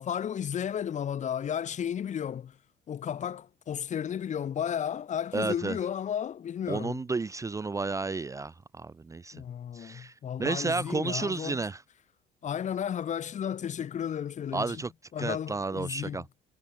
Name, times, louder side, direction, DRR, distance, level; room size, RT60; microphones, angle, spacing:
voice 1, 0.0-2.6 2.9-7.0 9.3-11.6 12.4-14.8 15.1-16.2, left 9 dB, 45° left, 1.7 m, -33 dB
voice 2, 5.3-5.8 6.7-9.4 9.7-10.1 10.4-11.8 14.5-14.9 15.2-16.2, right 3 dB, 20° right, 0.6 m, -32 dB
cardioid pair, 110°, 17 cm